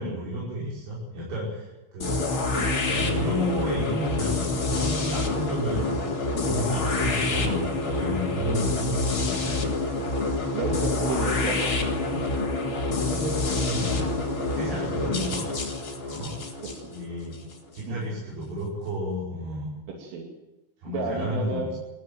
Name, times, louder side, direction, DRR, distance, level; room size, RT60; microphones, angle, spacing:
voice 1, 0.0-6.0 6.3-9.8 10.2-10.5 12.9-15.7 16.0-16.4 16.9-17.4 17.7-19.7 20.8-21.7, equal, 60° right, -7 dB, 7.7 m, -32 dB
sound 1, 2.0-17.8, left 2 dB, 30° left, 3.3 m, -27 dB
voice 2, 2.6-3.4 5.7-6.0 6.7-6.9 8.5-9.0 10.0-10.1 10.5-11.8 12.1-12.5 15.1-15.3 16.7-16.9 17.9-18.1 20.0-20.3 20.9-21.8, right 3 dB, 85° right, 0 dB, 5.4 m, -33 dB
23.0 x 16.0 x 9.3 m, 1.0 s
omnidirectional pair, 5.5 m